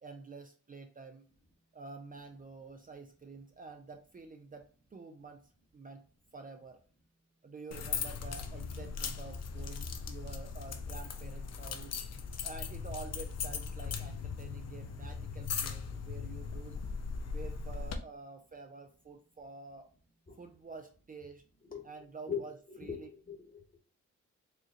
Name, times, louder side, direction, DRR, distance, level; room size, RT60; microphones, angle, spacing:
voice 1, 0.0-1.3 1.7-6.1 6.3-6.8 7.4-12.0 12.4-16.8 17.2-19.9 20.3-21.4 21.8-22.5 22.8-23.1, right 4 dB, 30° right, 5 dB, 0.5 m, -48 dB
sound 1, 7.7-18.0, left 6 dB, 60° left, 0.6 m, -39 dB
voice 2, 22.3-23.8, left 6 dB, 30° left, 3 dB, 1.3 m, -41 dB
4.8 x 3.0 x 2.7 m, 0.41 s
cardioid pair, 80°, 30 cm